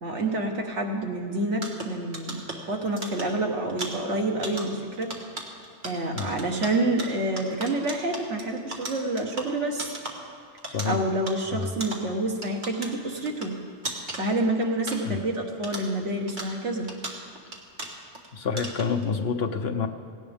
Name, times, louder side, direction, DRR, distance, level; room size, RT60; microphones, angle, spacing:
voice 1, 0.0-2.4 2.7-5.1 5.8-9.9 10.9-13.5 14.2-16.9, right 2 dB, 80° right, 1 dB, 1.9 m, -28 dB
sound 1, 1.6-15.4 15.6-18.3 18.6-19.1, right 2 dB, 45° right, 1.6 m, -39 dB
voice 2, 10.7-11.0 11.5-11.7 15.0-15.2 18.3-19.9, left 5 dB, 60° left, 6 dB, 1.1 m, -28 dB
18.0 x 17.5 x 3.6 m, 2.4 s
omnidirectional pair, 1.2 m